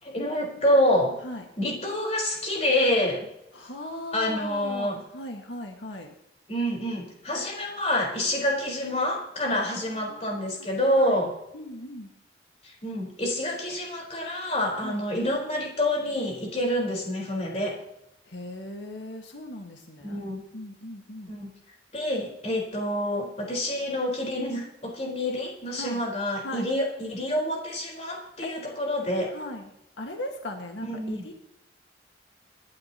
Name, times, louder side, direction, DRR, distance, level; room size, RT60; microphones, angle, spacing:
voice 1, 0.0-1.1 1.6-3.3 4.1-5.0 6.5-11.3 12.6-17.8 20.0-20.4 21.3-21.5 21.9-29.3 30.9-31.2, left 1 dB, 35° left, -1 dB, 4.6 m, -27 dB
voice 2, 3.5-6.1 9.4-10.4 10.8-11.2 11.5-12.1 14.8-15.0 18.3-20.2 20.5-21.3 25.7-26.0 26.4-26.7 28.4-28.5 29.3-29.7 30.0-31.3, left 1 dB, 85° left, 2 dB, 1.8 m, -38 dB
26.0 x 11.5 x 3.0 m, 0.81 s
head